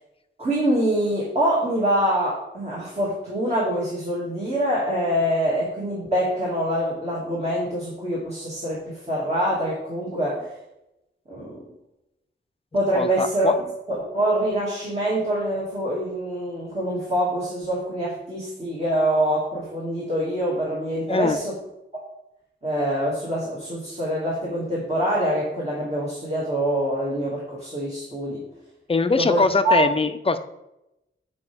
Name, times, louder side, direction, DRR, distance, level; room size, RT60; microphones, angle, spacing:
voice 1, 0.4-10.5 11.3-11.6 12.7-13.5 13.9-21.6 22.6-28.4 29.1-29.8, right 1 dB, 30° right, -6 dB, 2.4 m, -25 dB
voice 2, 12.9-13.5 21.1-21.4 28.9-30.4, left 3 dB, 25° left, 8 dB, 0.6 m, -22 dB
9.3 x 4.8 x 3.6 m, 0.90 s
wide cardioid pair, 75°, 21 cm